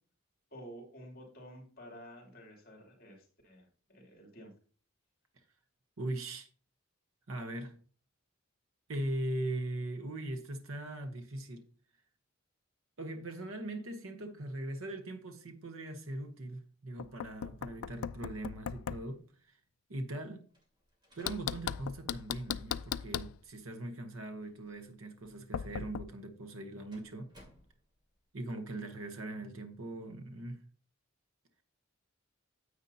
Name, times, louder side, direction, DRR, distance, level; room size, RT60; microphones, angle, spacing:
voice 1, 0.5-4.5, equal, 45° left, 2.9 m, -51 dB
voice 2, 6.0-6.5 7.3-7.8 8.9-11.7 13.0-19.6 19.9-20.4 21.2-27.3 28.3-30.6, right 1 dB, 75° right, 1.1 m, -40 dB
Knock, 17.0-19.1 21.3-23.4 25.5-26.1, left 8 dB, 80° left, 0.3 m, -38 dB
sound 1, 20.5-28.3, equal, 20° right, 2.6 m, -66 dB
9.6 x 7.9 x 2.8 m
head